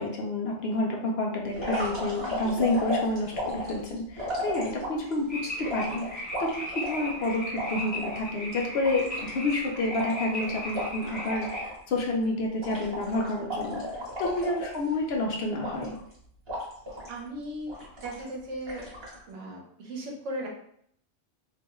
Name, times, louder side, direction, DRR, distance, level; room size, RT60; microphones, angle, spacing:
voice 1, 0.0-13.8 14.2-15.9, left 2 dB, 65° left, 0 dB, 0.8 m, -29 dB
sound 1, 1.5-5.1 5.6-8.2 8.5-8.6 8.8-11.8 12.0-12.3 12.6-15.1 15.6-16.1 16.5-17.2 17.7-18.3 18.7-19.2, left 1 dB, 25° right, 1.0 m, -34 dB
sound 2, 5.3-11.6, equal, 10° left, 0.7 m, -37 dB
voice 2, 17.1-18.9 19.3-20.5, right 1 dB, 80° right, 0 dB, 1.0 m, -37 dB
3.0 x 2.9 x 2.3 m, 0.68 s
omnidirectional pair, 1.2 m